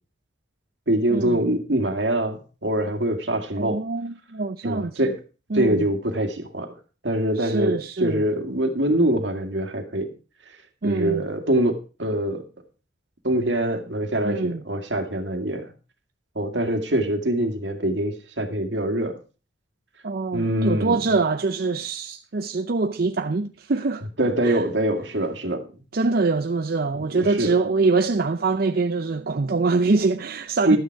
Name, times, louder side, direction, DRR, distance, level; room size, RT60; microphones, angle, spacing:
voice 1, 0.9-3.8 4.6-5.1 5.5-6.7 7.0-10.1 10.8-12.5 13.2-15.7 16.4-19.2 20.3-21.0 24.2-25.6 26.9-27.5 30.7-30.8, right 1 dB, 85° right, 2.0 m, -24 dB
voice 2, 3.5-4.9 5.5-5.9 7.4-8.2 10.8-11.2 14.2-14.6 20.0-24.0 24.4-24.6 25.9-30.8, right 3 dB, 55° right, 0.6 m, -24 dB
12.5 x 9.2 x 4.6 m
head